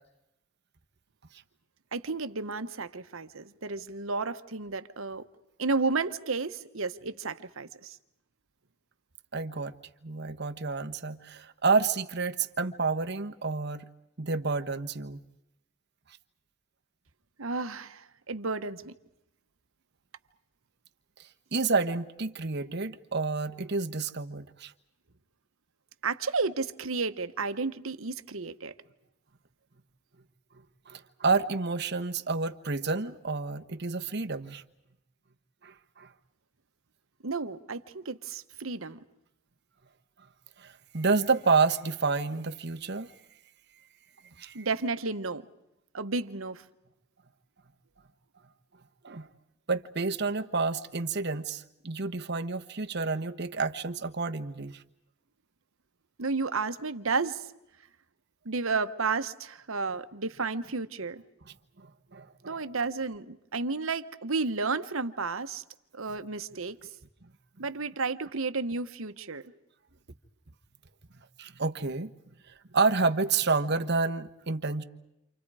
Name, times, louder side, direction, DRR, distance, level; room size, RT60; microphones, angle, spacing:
voice 1, 1.9-5.2 5.6-8.0 17.4-18.9 26.0-28.7 37.2-39.0 44.5-45.4 45.9-46.6 56.2-57.5 58.4-61.2 62.4-65.6 65.9-66.8 67.6-69.4, right 4 dB, 75° right, 1.2 m, -32 dB
voice 2, 9.3-9.7 10.0-13.8 14.2-15.2 21.5-24.7 30.9-34.6 35.6-36.1 40.6-43.1 44.4-44.7 49.0-49.3 49.7-54.8 61.8-61.9 62.1-62.6 71.4-72.1 72.7-74.8, right 4 dB, 55° right, 1.2 m, -29 dB
29.5 x 27.5 x 4.9 m
head